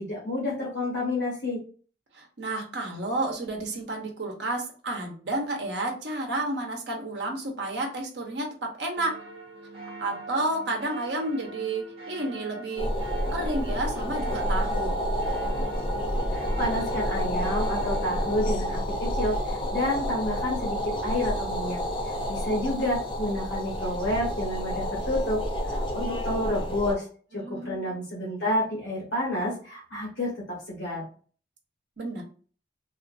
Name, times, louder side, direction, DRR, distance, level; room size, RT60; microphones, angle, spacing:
voice 1, 0.0-1.6 16.3-25.4 25.7-27.0 27.3-31.0, left 1 dB, 70° left, -4 dB, 1.1 m, -30 dB
voice 2, 2.1-9.2 10.0-15.0 27.3-28.0 32.0-32.2, right 2 dB, 65° right, 1 dB, 0.7 m, -31 dB
sound 1, 9.0-18.5, right 3 dB, 35° right, 0.6 m, -42 dB
sound 2, 12.8-26.9, equal, 25° left, 0.4 m, -29 dB
2.5 x 2.4 x 2.3 m, 0.42 s
head